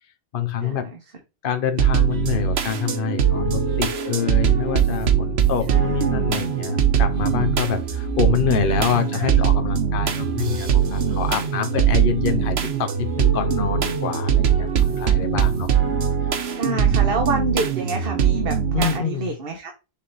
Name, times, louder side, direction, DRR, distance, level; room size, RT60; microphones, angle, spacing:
voice 1, 0.3-0.9 1.4-15.7 16.2-16.3 16.6-17.1 18.7-19.3, left 8 dB, 60° left, 0.9 m, -26 dB
sound 1, 1.8-19.0, right 8 dB, 90° right, 1.1 m, -21 dB
voice 2, 5.7-6.3 8.9-9.4 16.5-19.7, right 3 dB, 65° right, 1.3 m, -28 dB
7.1 x 3.4 x 4.0 m
omnidirectional pair, 1.0 m